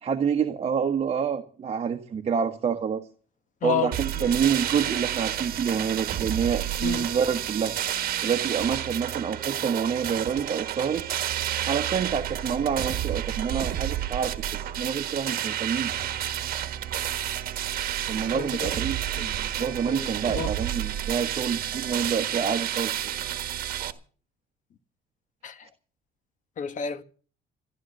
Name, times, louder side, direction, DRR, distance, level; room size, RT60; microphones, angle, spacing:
voice 1, 0.0-3.0 3.6-7.7 8.2-11.0 11.7-15.9 18.1-23.1, right 7 dB, 35° right, 1.3 m, -27 dB
voice 2, 3.6-4.3 6.8-7.1 18.3-18.8 19.9-20.5 25.4-25.7 26.6-27.0, left 8 dB, 50° left, 1.4 m, -31 dB
sound 1, 3.9-23.9, right 11 dB, 60° right, 1.5 m, -30 dB
14.5 x 11.5 x 6.7 m
cardioid pair, 110°, 17 cm